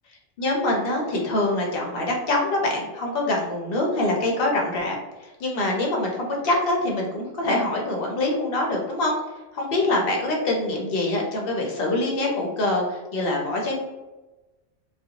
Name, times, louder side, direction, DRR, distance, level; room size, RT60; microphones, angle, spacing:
voice 1, 0.1-9.2 9.5-13.8, left 2 dB, 60° left, -1 dB, 0.7 m, -25 dB
2.4 x 2.2 x 2.7 m, 1.1 s
omnidirectional pair, 1.3 m